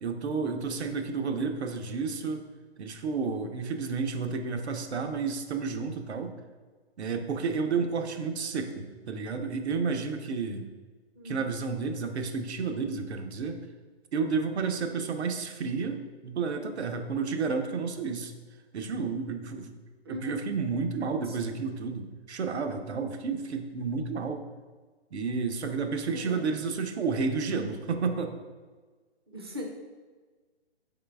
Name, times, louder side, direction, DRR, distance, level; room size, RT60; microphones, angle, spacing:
voice 1, 0.0-2.4 2.8-6.3 7.0-10.7 11.2-13.6 14.1-18.3 18.7-19.8 20.1-24.4 25.1-28.3, right 4 dB, 80° right, 5 dB, 0.7 m, -31 dB
voice 2, 11.2-11.5 20.0-20.4 21.2-21.5 26.0-26.5 29.3-29.7, left 1 dB, 25° right, 1 dB, 0.4 m, -41 dB
3.9 x 3.9 x 3.3 m, 1.4 s
hypercardioid pair, 160°, 33 cm